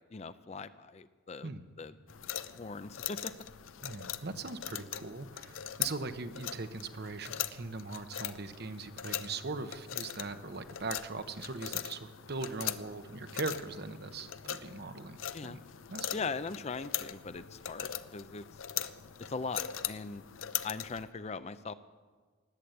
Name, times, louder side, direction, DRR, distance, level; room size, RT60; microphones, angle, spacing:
voice 1, 0.1-1.5 1.8-2.0 2.6-3.3 15.3-15.6 16.1-18.4 19.2-20.2 20.6-21.7, left 4 dB, 35° left, 13 dB, 0.5 m, -40 dB
sound 1, 2.1-21.0, left 11 dB, 80° left, 0.6 m, -41 dB
voice 2, 3.8-15.2 15.4-15.6 15.9-16.3, right 3 dB, 50° right, 10 dB, 0.9 m, -40 dB
19.5 x 8.5 x 7.9 m, 1.4 s
head